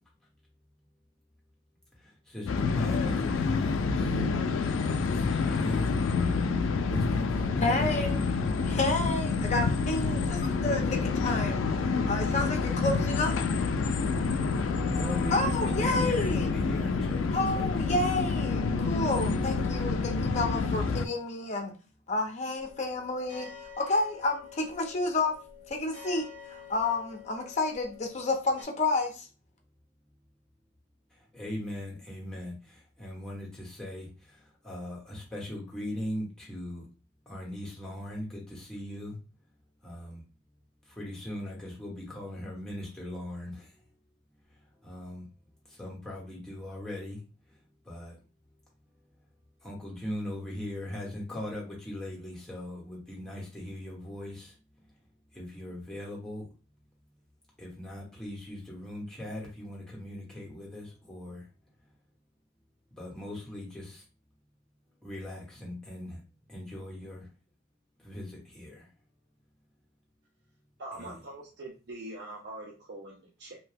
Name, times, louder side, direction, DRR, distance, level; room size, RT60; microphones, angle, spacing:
voice 1, 2.0-4.2 4.8-5.9 6.9-7.9 14.5-17.8 31.3-34.1 34.6-36.9 37.3-39.2 39.8-40.2 41.0-43.7 44.8-45.2 45.8-47.2 47.9-48.1 49.6-54.5 55.3-56.4 57.6-61.4 63.0-64.0 65.0-66.2 66.5-67.2 68.0-68.8 70.9-71.2, left 1 dB, 5° left, -3 dB, 1.0 m, -39 dB
sound 1, 2.5-21.1, left 4 dB, 85° left, 0.3 m, -28 dB
voice 2, 7.6-8.2 8.6-11.6 12.1-13.3 15.3-16.5 17.3-21.7 22.1-23.5 23.8-25.4 25.7-29.3, left 2 dB, 35° left, 3 dB, 0.6 m, -30 dB
sound 2, 22.6-28.6, left 6 dB, 40° right, 1.1 m, -48 dB
voice 3, 70.8-73.6, right 2 dB, 60° right, -1 dB, 0.6 m, -43 dB
2.7 x 2.1 x 3.4 m, 0.33 s
head